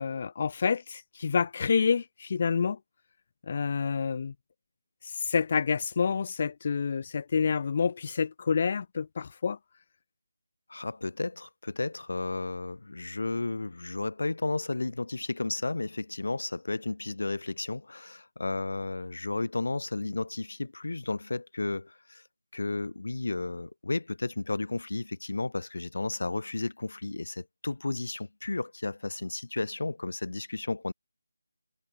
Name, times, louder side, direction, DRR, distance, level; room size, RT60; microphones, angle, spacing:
voice 1, 0.0-2.8 3.5-4.3 5.1-9.6, left 6 dB, 35° left, 1.5 m, -28 dB
voice 2, 10.7-22.2 22.5-30.9, left 2 dB, 60° left, 1.3 m, -33 dB
figure-of-eight pair, 160°, 0 cm